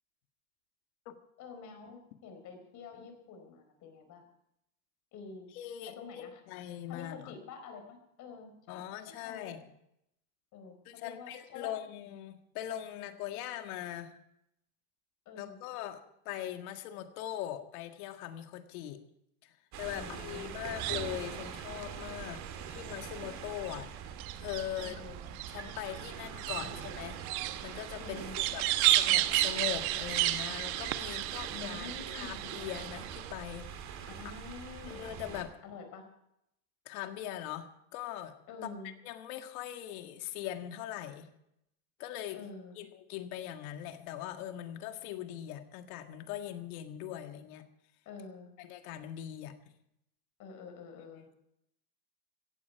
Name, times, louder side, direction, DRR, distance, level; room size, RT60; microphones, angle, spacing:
voice 1, 1.4-4.3 5.1-5.5 5.9-6.4 6.9-8.8 9.1-9.5 10.5-11.7 15.2-15.6 19.9-20.5 22.3-22.6 24.8-25.2 26.5-26.7 28.0-28.4 31.5-32.4 34.1-35.3 35.6-36.0 38.5-38.9 42.3-42.8 48.0-48.5 50.4-51.3, left 5 dB, 45° left, 5 dB, 4.6 m, -48 dB
voice 2, 5.6-7.3 8.7-9.6 10.9-14.2 15.4-19.0 19.4-22.4 22.7-23.9 24.3-25.0 25.5-33.7 34.9-35.5 36.9-38.4 39.0-41.3 42.0-42.4 42.8-47.7 48.6-49.6, left 12 dB, 85° left, 6 dB, 1.9 m, -41 dB
sound 1, 19.7-35.4, right 7 dB, 40° right, 2.3 m, -44 dB
sound 2, 20.3-33.3, right 16 dB, 75° right, 1.1 m, -34 dB
16.5 x 15.5 x 4.6 m, 0.78 s
cardioid pair, 155°, 42 cm